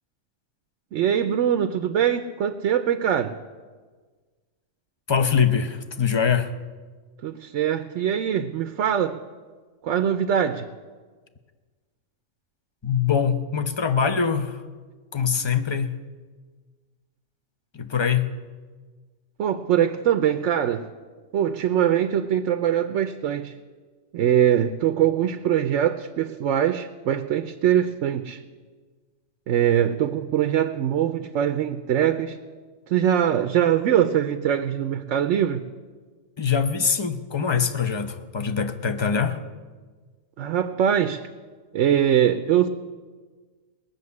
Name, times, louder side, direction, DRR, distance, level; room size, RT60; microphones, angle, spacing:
voice 1, 0.9-3.4 7.2-9.2 9.8-10.7 19.4-20.9 21.3-23.5 24.1-28.4 29.5-32.4 32.9-35.6 40.4-41.2 41.7-42.7, right 9 dB, 70° right, 9 dB, 1.0 m, -22 dB
voice 2, 5.1-6.5 12.8-14.6 15.1-15.9 17.7-18.3 36.4-39.4, left 6 dB, 25° left, 9 dB, 0.7 m, -23 dB
19.5 x 7.0 x 9.6 m, 1.5 s
omnidirectional pair, 1.3 m